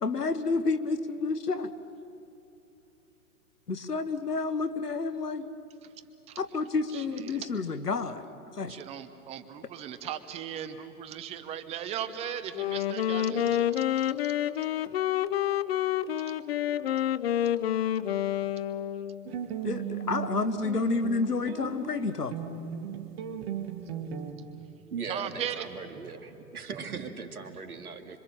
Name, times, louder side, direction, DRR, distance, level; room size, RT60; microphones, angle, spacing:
voice 1, 0.0-1.7 3.7-5.5 6.4-8.8 19.6-22.3, left 4 dB, 90° left, 11 dB, 1.4 m, -30 dB
voice 2, 6.9-7.5 8.7-14.1 14.5-14.7 22.6-23.0 23.9-25.7 26.0-26.4 26.7-27.1 27.4-27.8, right 9 dB, 15° right, 10 dB, 0.7 m, -39 dB
Wind instrument woodwind instrument, 12.5-19.3, left 11 dB, 40° left, 0.6 m, -28 dB
sound 1, 19.3-24.3, right 8 dB, 40° right, 2.0 m, -37 dB
voice 3, 24.9-28.2, right 5 dB, 70° right, 7 dB, 2.3 m, -39 dB
26.5 x 24.5 x 7.4 m, 2.8 s
figure-of-eight pair, 125°, 45 cm